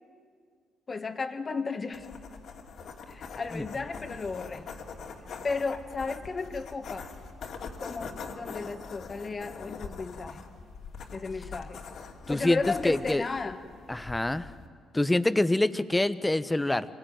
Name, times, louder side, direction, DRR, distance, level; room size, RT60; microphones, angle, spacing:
voice 1, 0.9-2.2 3.1-4.7 5.4-7.1 7.8-10.5 11.1-11.8 12.3-13.6, left 4 dB, 35° left, 8 dB, 1.8 m, -34 dB
sound 1, 1.9-14.7, left 5 dB, 65° left, 2.6 m, -43 dB
voice 2, 12.3-13.2 13.9-14.5 14.9-16.9, left 1 dB, 15° left, 14 dB, 1.0 m, -26 dB
25.0 x 17.0 x 9.3 m, 2.1 s
hypercardioid pair, 50°, 0 cm